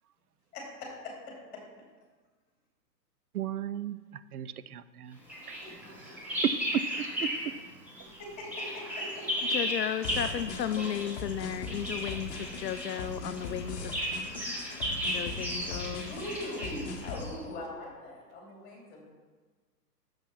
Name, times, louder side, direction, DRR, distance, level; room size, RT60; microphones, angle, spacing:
voice 1, 0.5-1.6 5.6-5.7 8.2-9.5 16.0-19.0, left 1 dB, 20° left, -2 dB, 2.5 m, -41 dB
voice 2, 3.3-5.2 5.5-5.6 6.7-7.5, right 9 dB, 65° right, 15 dB, 0.6 m, -36 dB
Bird vocalization bird call bird song, 5.3-7.6 7.9-17.4, equal, 5° right, 1.2 m, -35 dB
voice 3, 9.5-14.0 15.1-16.1, left 9 dB, 80° left, 10 dB, 0.6 m, -34 dB
sound 1, 10.0-17.3, left 3 dB, 35° left, 1.1 m, -40 dB
6.7 x 6.0 x 5.7 m, 1.4 s
hypercardioid pair, 135°, 49 cm